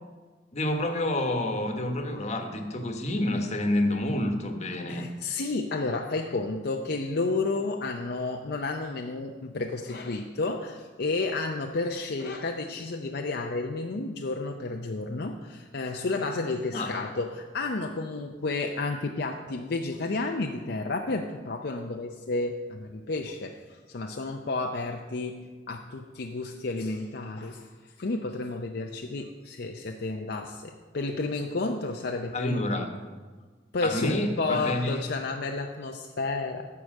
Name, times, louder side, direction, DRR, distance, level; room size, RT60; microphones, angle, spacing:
voice 1, 0.5-5.0 16.7-16.9 32.3-32.9 33.8-35.0, left 1 dB, 40° left, 4 dB, 1.2 m, -28 dB
voice 2, 4.9-27.7 28.0-32.6 33.7-36.7, left 3 dB, 65° left, 3 dB, 0.6 m, -31 dB
14.0 x 4.9 x 6.4 m, 1.4 s
head